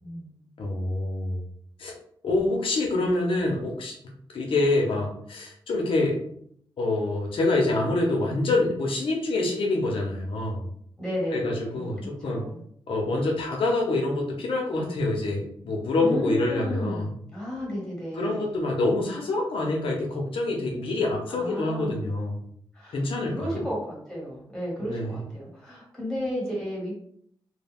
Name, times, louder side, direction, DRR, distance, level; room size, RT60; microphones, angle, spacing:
voice 1, 0.0-0.5 11.0-12.6 16.0-18.6 21.3-22.0 22.7-26.9, equal, 5° left, -5 dB, 1.3 m, -33 dB
voice 2, 0.6-1.4 1.8-2.0 2.2-4.0 4.3-6.2 6.8-10.7 11.3-12.4 12.9-17.1 18.2-22.4 22.9-23.7 24.8-25.1, left 2 dB, 85° left, -1 dB, 0.7 m, -26 dB
2.3 x 2.2 x 3.4 m, 0.65 s
wide cardioid pair, 110°, 9 cm